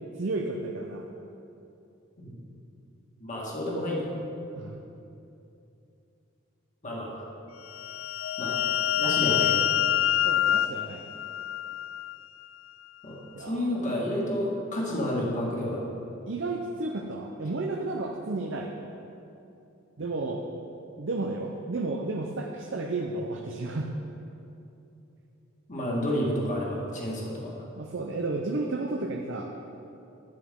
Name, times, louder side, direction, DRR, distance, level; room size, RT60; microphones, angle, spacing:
voice 1, 0.2-1.0 4.5-4.8 10.2-11.0 13.3-13.7 16.3-18.7 20.0-20.4 21.0-23.9 27.8-29.5, right 2 dB, 65° right, 1 dB, 0.7 m, -32 dB
voice 2, 3.2-4.1 6.8-7.2 8.4-8.6 9.0-9.5 13.0-13.2 13.5-15.9 25.7-27.6, left 1 dB, 40° left, -4 dB, 1.9 m, -30 dB
sound 1, 7.7-12.2, left 12 dB, 80° left, 0.3 m, -26 dB
11.5 x 9.2 x 3.7 m, 2.8 s
head